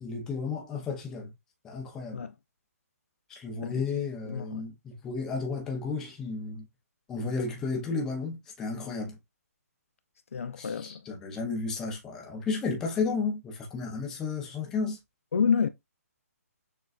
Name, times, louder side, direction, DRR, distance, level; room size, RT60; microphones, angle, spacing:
voice 1, 0.0-1.3 1.6-2.2 3.3-6.6 7.1-9.2 10.6-15.0, left 4 dB, 5° left, 0.6 m, -33 dB
voice 2, 4.3-4.7 10.3-11.1 15.3-15.7, left 6 dB, 60° left, 0.4 m, -28 dB
6.5 x 2.3 x 2.4 m
hypercardioid pair, 175°, 8 cm